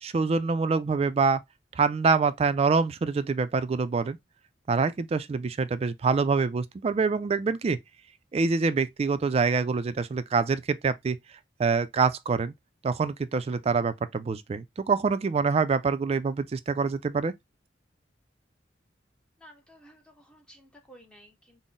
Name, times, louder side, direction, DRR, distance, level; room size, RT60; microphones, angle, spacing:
voice 1, 0.0-1.4 1.8-4.2 4.7-7.8 8.3-11.2 11.6-12.5 12.8-17.3, right 4 dB, 35° right, 0.3 m, -25 dB
voice 2, 19.4-21.6, equal, 5° left, 0.6 m, -54 dB
3.7 x 2.0 x 3.8 m
head